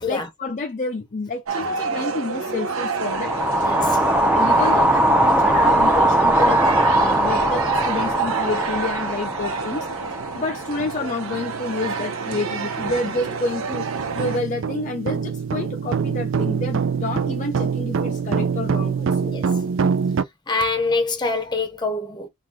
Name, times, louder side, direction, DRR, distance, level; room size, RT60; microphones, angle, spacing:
voice 1, 0.1-3.3 4.3-9.9 10.3-13.9 14.1-19.3, left 3 dB, 35° left, 0.5 m, -29 dB
sound 1, 1.5-14.4, right 5 dB, 85° right, 0.8 m, -29 dB
sound 2, 3.0-11.2, right 1 dB, 5° right, 0.7 m, -20 dB
voice 2, 3.6-4.0 19.2-19.6 20.5-22.3, left 3 dB, 20° left, 0.9 m, -25 dB
sound 3, 9.6-9.7 10.2-10.4 10.8-20.2, right 6 dB, 65° right, 0.4 m, -25 dB
4.1 x 2.4 x 4.4 m
head